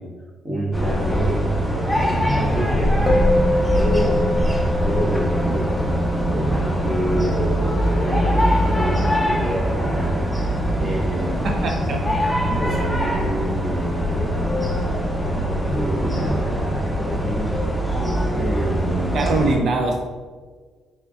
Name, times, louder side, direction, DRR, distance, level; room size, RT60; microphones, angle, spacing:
voice 1, 0.4-1.5 1.9-3.5 3.7-4.3 4.8-11.7 12.6-17.5 18.3-19.3, equal, 25° right, -6 dB, 1.5 m, -27 dB
sound 1, 0.7-19.6, equal, 5° right, 0.9 m, -22 dB
Musical instrument, 3.1-12.6, left 1 dB, 20° left, 0.5 m, -27 dB
voice 2, 11.4-12.0 12.5-12.6 19.1-20.2, right 3 dB, 60° right, 3 dB, 0.4 m, -23 dB
4.6 x 4.3 x 2.5 m, 1.5 s
cardioid pair, 90°, 0 cm